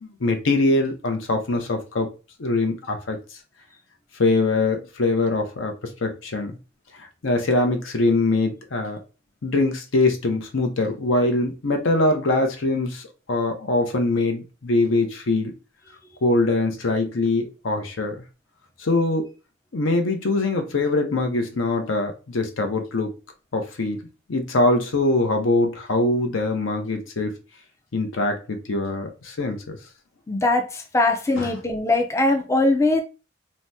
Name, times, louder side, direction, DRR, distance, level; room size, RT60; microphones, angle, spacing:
voice 1, 0.0-2.1 2.4-3.2 4.1-5.7 6.0-6.6 7.0-9.0 9.4-15.5 16.2-18.2 18.8-19.3 19.7-23.1 23.5-27.4 27.9-29.8 31.3-31.6, left 2 dB, 80° left, 0.6 m, -23 dB
voice 2, 30.3-33.0, left 2 dB, 15° left, 0.3 m, -21 dB
2.8 x 2.0 x 3.4 m
head